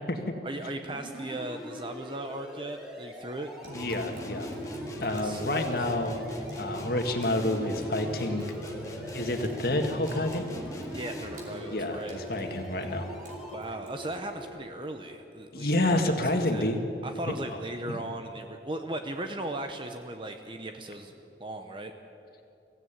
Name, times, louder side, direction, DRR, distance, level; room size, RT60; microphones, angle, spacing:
voice 1, 0.4-3.5 5.0-5.4 10.9-12.2 13.5-21.1 21.4-21.9, right 1 dB, 25° right, 5 dB, 0.9 m, -37 dB
sound 1, 0.9-13.6, equal, 5° right, 3.2 m, -43 dB
Water tap faucet / Sink (filling or washing) / Drip, 3.6-14.4, equal, 50° right, 4.9 m, -43 dB
voice 2, 3.7-4.5 5.0-6.2 6.6-8.5 9.1-10.5 11.6-13.1 15.5-16.8 17.3-17.4 17.9-18.0, left 1 dB, 55° left, 5 dB, 2.0 m, -29 dB
sound 2, 3.7-11.5, left 1 dB, 20° left, 2.0 m, -43 dB
24.0 x 16.0 x 9.0 m, 2.8 s
head